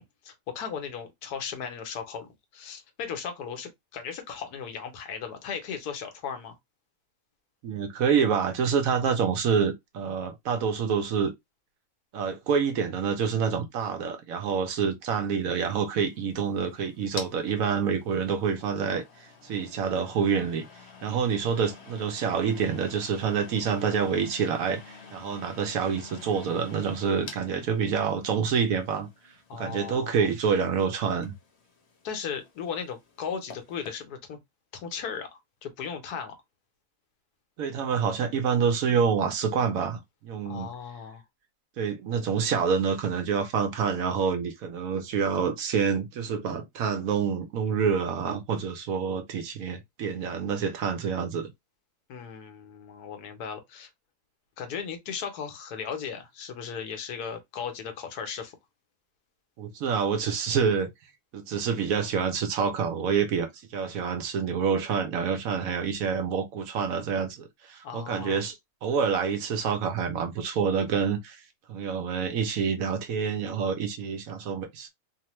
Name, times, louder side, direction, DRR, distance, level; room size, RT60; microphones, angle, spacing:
voice 1, 0.0-6.6 29.5-30.3 32.0-34.4 34.7-36.4 40.4-41.2 52.1-53.9 54.6-58.6 67.8-68.5, left 7 dB, 80° left, 1.3 m, -37 dB
voice 2, 7.6-11.3 12.1-20.6 21.0-29.1 29.5-31.3 37.6-40.7 41.8-51.5 59.6-60.9 61.3-68.6 68.8-71.4 71.7-74.9, right 6 dB, 70° right, 1.0 m, -27 dB
sound 1, 15.3-34.0, left 5 dB, 55° left, 0.9 m, -49 dB
3.1 x 2.1 x 2.9 m
omnidirectional pair, 1.6 m